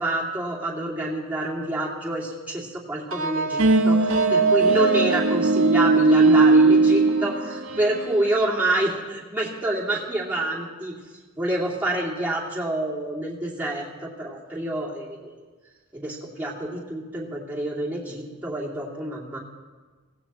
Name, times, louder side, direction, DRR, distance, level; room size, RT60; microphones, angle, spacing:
voice 1, 0.0-11.0 11.4-15.3 15.9-19.4, right 1 dB, 10° right, -5 dB, 2.6 m, -27 dB
sound 1, 3.1-8.3, right 3 dB, 80° right, 1.2 m, -19 dB
24.5 x 17.5 x 3.1 m, 1.4 s
head